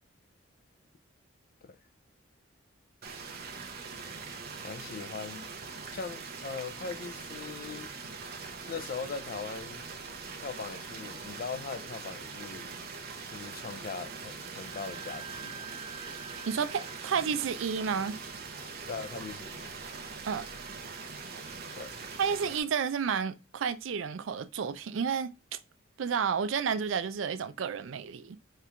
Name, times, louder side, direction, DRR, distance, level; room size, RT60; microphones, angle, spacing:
sound 1, 3.0-22.6, right 4 dB, 50° right, 0.8 m, -42 dB
voice 1, 4.6-5.5 5.9-7.9 8.7-9.9 10.4-12.7 13.3-15.7 18.9-19.8 21.7-22.1, left 5 dB, 45° left, 0.4 m, -40 dB
Wind instrument woodwind instrument, 14.5-21.8, right 6 dB, 20° right, 1.1 m, -51 dB
voice 2, 16.5-18.2 20.2-20.5 22.2-25.6 26.0-28.4, right 6 dB, 75° right, 0.4 m, -31 dB
4.4 x 2.5 x 3.3 m
head